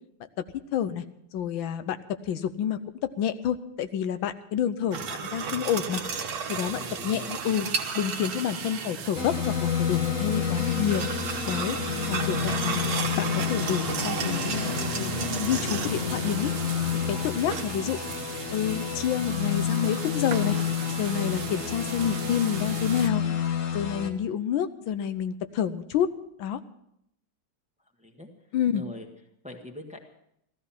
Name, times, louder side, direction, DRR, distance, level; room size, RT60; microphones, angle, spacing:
voice 1, 0.7-1.0 1.3-2.0 2.3-2.8 3.2-6.0 6.5-7.7 7.9-11.0 11.5-11.8 12.1-12.8 13.2-16.5 16.9-18.0 18.5-20.6 21.0-23.2 23.7-26.1 26.4-26.6 28.5-28.8, left 9 dB, 85° left, 11 dB, 1.5 m, -28 dB
sound 1, 4.9-9.1 10.3-16.1 17.5-18.1 20.3-20.6, right 6 dB, 55° right, 1.5 m, -34 dB
sound 2, 6.5-23.1, right 9 dB, 75° right, 1.5 m, -39 dB
voice 2, 6.8-7.3 28.0-28.3 28.7-29.1 29.4-30.0, left 1 dB, 5° right, 3 dB, 1.3 m, -42 dB
sound 3, 9.1-24.1, left 7 dB, 50° left, 1.2 m, -30 dB
15.5 x 13.5 x 5.7 m, 0.76 s
omnidirectional pair, 2.1 m